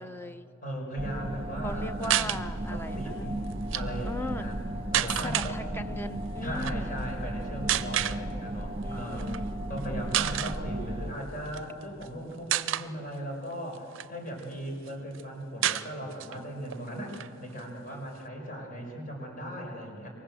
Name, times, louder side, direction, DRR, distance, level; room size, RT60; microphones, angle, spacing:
voice 1, 0.0-0.5 1.6-3.4 4.0-4.5 5.0-7.0 8.8-9.7, left 1 dB, 10° left, 9 dB, 0.8 m, -39 dB
voice 2, 0.6-2.4 2.7-3.4 3.7-4.6 4.9-5.6 6.4-9.3 9.7-20.1, equal, 40° left, 1 dB, 5.9 m, -38 dB
sound 1, 1.0-11.1, right 1 dB, 25° right, 1.7 m, -35 dB
sound 2, 2.0-2.4 3.5-3.8 4.9-5.5 6.6-6.8 7.7-8.2 9.2-9.4 9.8-9.9 10.1-10.6 11.5-12.1 12.5-12.9 13.5-14.5 14.9-15.0 15.2-15.3 15.6-16.4 16.7-16.8 17.1-18.2, right 12 dB, 60° right, 0.5 m, -29 dB
27.0 x 23.0 x 7.8 m, 2.4 s
head